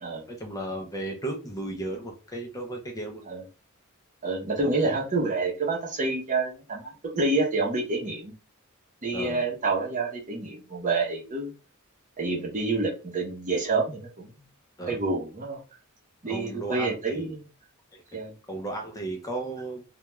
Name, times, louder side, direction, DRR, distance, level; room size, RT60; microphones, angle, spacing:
voice 1, 0.3-3.2 4.6-5.0 9.1-9.4 14.8-15.0 16.3-17.3 17.9-18.0 18.5-19.8, right 2 dB, 15° left, 2 dB, 0.5 m, -35 dB
voice 2, 4.2-8.3 9.0-11.5 12.2-14.3 14.9-15.6 16.2-17.4 18.1-18.3, right 3 dB, 35° right, -1 dB, 0.7 m, -28 dB
2.2 x 2.2 x 3.0 m, 0.33 s
head